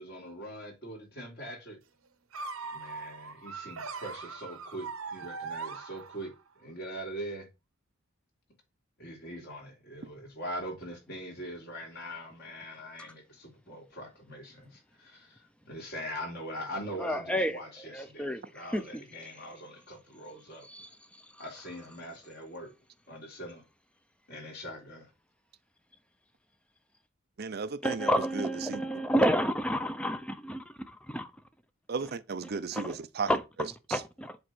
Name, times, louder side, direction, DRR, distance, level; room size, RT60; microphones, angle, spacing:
voice 1, 0.0-1.8 2.7-6.3 6.6-7.5 9.0-15.4 15.7-20.6 21.4-22.7 23.1-23.6 24.3-25.1, equal, 50° left, 3.7 m, -42 dB
sound 1, 2.3-6.5, right 4 dB, 85° right, 1.0 m, -40 dB
voice 2, 17.0-19.3 20.6-21.4 27.8-31.3 32.4-33.0 33.3-34.4, equal, 5° left, 0.6 m, -31 dB
voice 3, 27.4-28.1 28.4-28.8 31.9-33.3, right 4 dB, 50° right, 0.5 m, -34 dB
7.7 x 3.6 x 6.1 m
head